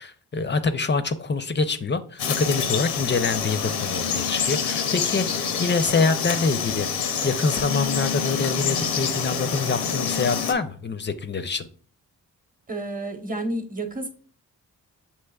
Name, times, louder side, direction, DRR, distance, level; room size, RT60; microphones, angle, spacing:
voice 1, 0.0-11.7, left 4 dB, 30° left, 10 dB, 0.5 m, -25 dB
Frog, 2.2-10.5, left 6 dB, 85° left, 0.7 m, -27 dB
voice 2, 12.7-14.1, right 2 dB, 20° right, 5 dB, 1.0 m, -30 dB
6.7 x 3.0 x 2.3 m, 0.44 s
supercardioid pair, 50°, 38 cm